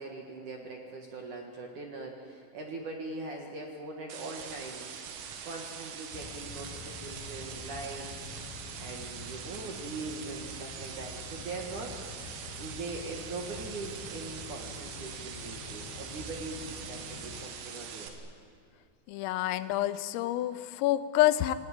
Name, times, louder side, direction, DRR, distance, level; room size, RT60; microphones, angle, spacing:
voice 1, 0.0-5.0 5.4-11.9 12.3-18.3, right 3 dB, 55° right, 2 dB, 2.3 m, -41 dB
sound 1, 4.1-18.1, right 7 dB, 85° right, 4.4 m, -43 dB
sound 2, 6.1-17.5, left 4 dB, 70° left, 2.3 m, -47 dB
voice 2, 19.1-21.5, left 14 dB, 85° left, 13 dB, 3.5 m, -27 dB
28.5 x 19.0 x 8.9 m, 2.2 s
omnidirectional pair, 5.8 m